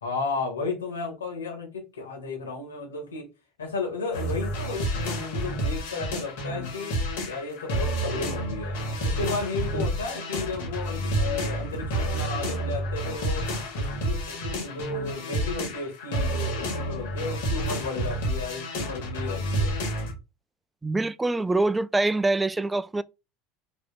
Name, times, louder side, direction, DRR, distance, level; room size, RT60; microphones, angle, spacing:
voice 1, 0.0-3.3 3.6-6.9 7.3-8.8 9.0-13.4 13.8-19.8, left 3 dB, 85° left, 2.2 m, -33 dB
sound 1, 4.1-20.1, right 1 dB, 70° left, 2.5 m, -29 dB
voice 2, 20.8-23.0, right 2 dB, 15° right, 0.4 m, -25 dB
4.9 x 4.2 x 2.5 m
hypercardioid pair, 75°, 0 cm